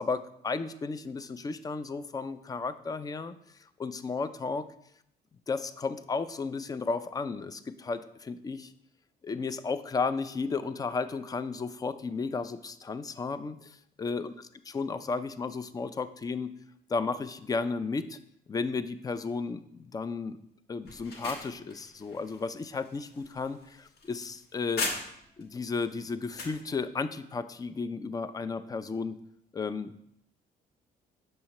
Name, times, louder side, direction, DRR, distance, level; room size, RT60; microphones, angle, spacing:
voice 1, 0.0-4.7 5.5-8.7 9.2-16.5 16.9-18.2 18.5-20.4 20.7-24.9 25.4-29.2 29.5-30.0, left 4 dB, 20° left, 13 dB, 0.3 m, -34 dB
sound 1, 20.8-25.4 25.8-26.6, left 3 dB, 75° left, 1.2 m, -39 dB
6.5 x 5.3 x 2.9 m, 0.73 s
cardioid pair, 105°, 17 cm